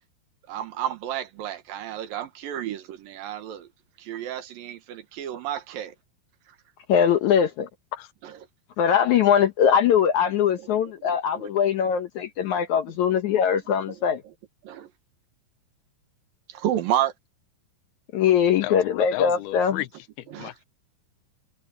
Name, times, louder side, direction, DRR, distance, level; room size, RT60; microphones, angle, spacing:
voice 1, 0.5-3.7 4.0-5.9 8.2-8.3 10.6-10.7 11.0-11.1 11.3-11.5 12.4-12.8 13.9-14.3 14.6-14.9 16.5-17.1 20.3-20.5, right 11 dB, 70° right, 2.8 m, -31 dB
voice 2, 6.9-7.7 8.8-14.2 18.1-19.8, left 8 dB, 70° left, 1.9 m, -21 dB
voice 3, 18.6-19.9 20.2-20.6, left 15 dB, 90° left, 2.9 m, -33 dB
omnidirectional pair, 4.4 m